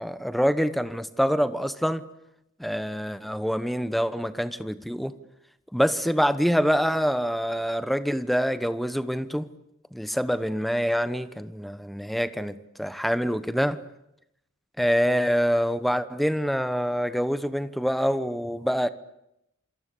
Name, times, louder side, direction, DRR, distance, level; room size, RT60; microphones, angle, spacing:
voice 1, 0.0-2.0 2.6-5.1 5.7-9.5 9.9-13.8 14.8-18.9, equal, ahead, 1.0 m, -25 dB
27.5 x 26.0 x 8.4 m
head